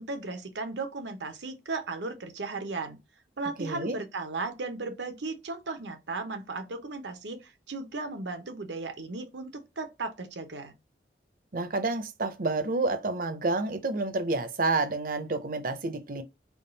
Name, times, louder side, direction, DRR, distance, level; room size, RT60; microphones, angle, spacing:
voice 1, 0.0-3.0 3.4-10.7, right 3 dB, 85° right, 0.8 m, -36 dB
voice 2, 3.6-4.0 11.5-16.2, right 3 dB, 50° right, 0.6 m, -29 dB
3.6 x 2.3 x 3.9 m
head